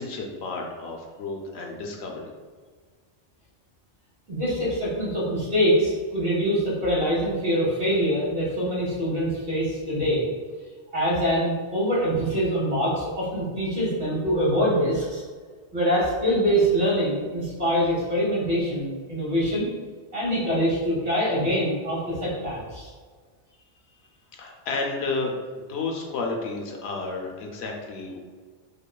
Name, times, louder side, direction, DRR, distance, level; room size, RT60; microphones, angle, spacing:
voice 1, 0.0-2.3 24.3-28.2, left 3 dB, 75° left, 1 dB, 0.9 m, -31 dB
voice 2, 4.3-10.2 10.9-15.2 15.7-19.7 20.1-22.9, equal, 90° right, -8 dB, 1.9 m, -24 dB
5.3 x 2.2 x 2.2 m, 1.6 s
omnidirectional pair, 1.1 m